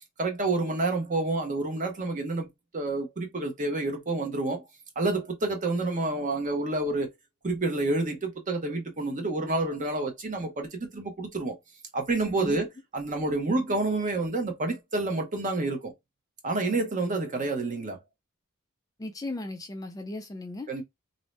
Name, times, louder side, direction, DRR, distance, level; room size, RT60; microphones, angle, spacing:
voice 1, 0.2-2.5 2.7-4.6 5.0-7.1 7.4-11.6 11.9-15.9 16.4-18.0 20.7-20.8, right 2 dB, 35° right, 0.7 m, -29 dB
voice 2, 19.0-20.7, left 2 dB, 15° left, 0.3 m, -36 dB
2.6 x 2.0 x 3.1 m
head